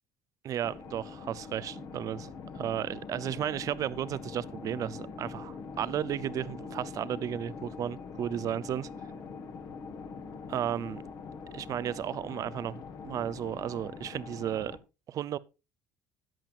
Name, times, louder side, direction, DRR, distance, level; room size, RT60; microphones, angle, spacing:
voice 1, 0.4-2.3 2.5-8.9 10.5-11.0 11.5-14.8 15.1-15.4, right 10 dB, 45° right, 0.5 m, -34 dB
sound 1, 0.6-14.8, left 5 dB, 50° left, 1.5 m, -43 dB
13.5 x 8.7 x 2.4 m
supercardioid pair, 105°, 8 cm